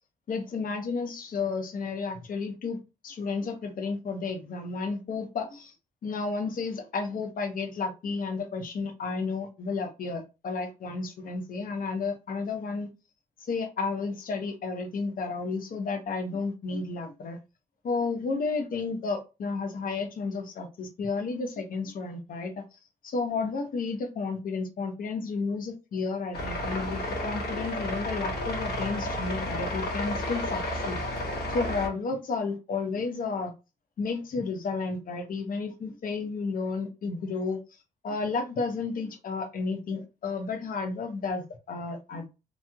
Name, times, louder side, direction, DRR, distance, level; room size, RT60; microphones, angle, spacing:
voice 1, 0.3-2.8 3.0-5.7 6.0-12.9 13.5-17.4 17.8-22.6 23.0-31.0 31.5-33.5 34.0-37.6 38.0-42.3, left 4 dB, 60° left, 0.7 m, -32 dB
sound 1, 26.3-31.9, left 1 dB, 80° left, 1.2 m, -32 dB
3.0 x 2.8 x 2.3 m
cardioid pair, 105°, 17 cm